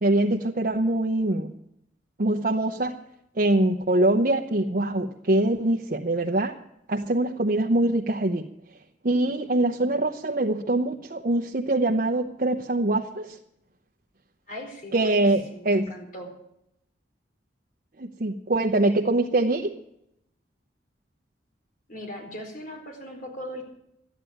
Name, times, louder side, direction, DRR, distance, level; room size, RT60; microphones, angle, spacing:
voice 1, 0.0-1.5 2.2-3.0 3.4-6.6 6.9-8.5 9.0-13.4 14.9-15.9 18.0-19.8, right 2 dB, 50° right, 1 dB, 0.9 m, -23 dB
voice 2, 14.5-16.3 21.9-23.6, equal, 50° left, 2 dB, 4.4 m, -39 dB
13.0 x 9.9 x 9.1 m, 0.79 s
head